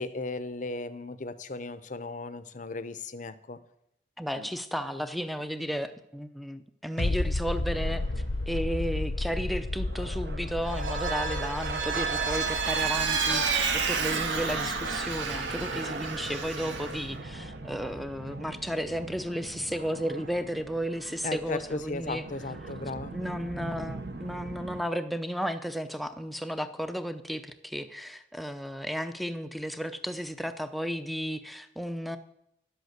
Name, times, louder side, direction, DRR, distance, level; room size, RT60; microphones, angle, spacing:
voice 1, 0.0-3.6 4.4-4.5 21.2-23.2, left 3 dB, 40° left, 0.7 m, -36 dB
voice 2, 4.2-8.0 8.5-22.2 23.1-32.2, equal, ahead, 0.6 m, -33 dB
sound 1, 7.0-18.3 18.6-18.7, left 2 dB, 80° left, 0.8 m, -34 dB
sound 2, 7.7-24.8, right 3 dB, 55° right, 1.0 m, -39 dB
Vehicle, 10.6-17.0, right 5 dB, 80° right, 1.7 m, -31 dB
11.5 x 8.1 x 7.9 m
head